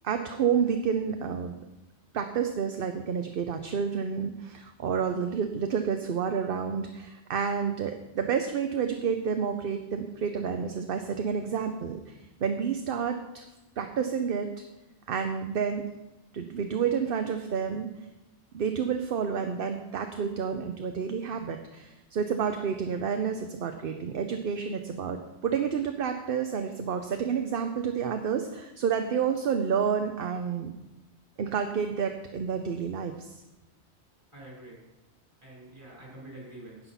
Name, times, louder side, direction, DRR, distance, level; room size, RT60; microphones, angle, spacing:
voice 1, 0.0-1.6 2.1-12.1 12.4-13.4 13.8-14.6 15.1-15.8 16.3-17.9 18.5-30.7 31.4-33.4, right 7 dB, 55° right, 6 dB, 0.8 m, -29 dB
voice 2, 34.3-34.8 35.4-36.9, right 1 dB, 25° right, -5 dB, 5.2 m, -46 dB
10.0 x 8.9 x 5.7 m, 1.0 s
omnidirectional pair, 1.2 m